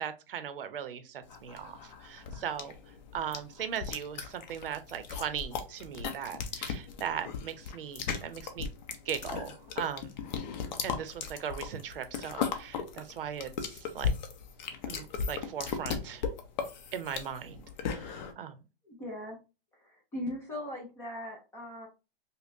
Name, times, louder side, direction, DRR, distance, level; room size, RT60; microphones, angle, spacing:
voice 1, 0.0-2.7 3.1-8.7 9.1-10.2 10.8-14.1 14.9-16.2 16.9-17.6 18.0-18.1 18.4-18.5, right 8 dB, 65° right, 0.7 m, -38 dB
sound 1, 1.3-18.3, left 6 dB, 45° left, 0.8 m, -36 dB
voice 2, 18.8-19.4 19.8-21.9, left 1 dB, 10° left, 0.4 m, -39 dB
5.2 x 2.1 x 2.6 m
hypercardioid pair, 145°, 30 cm